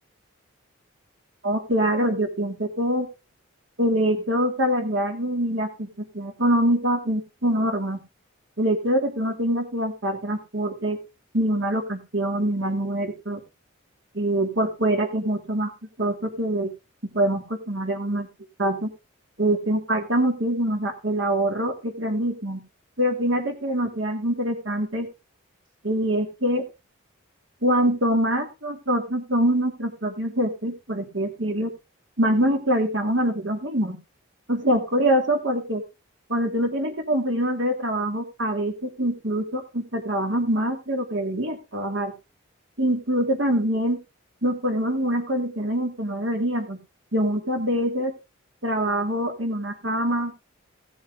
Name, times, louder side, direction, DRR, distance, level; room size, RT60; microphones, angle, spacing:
voice 1, 1.4-3.1 3.8-5.9 6.1-8.0 8.6-11.0 11.3-13.4 14.1-15.7 16.0-16.7 17.1-18.3 18.6-18.9 19.4-22.6 23.0-25.1 25.8-26.6 27.6-31.7 32.2-34.0 34.5-35.8 36.3-42.1 42.8-44.0 44.4-46.8 47.1-48.1 48.6-50.3, right 1 dB, 60° right, 4 dB, 2.6 m, -24 dB
16.5 x 7.1 x 3.7 m, 0.28 s
head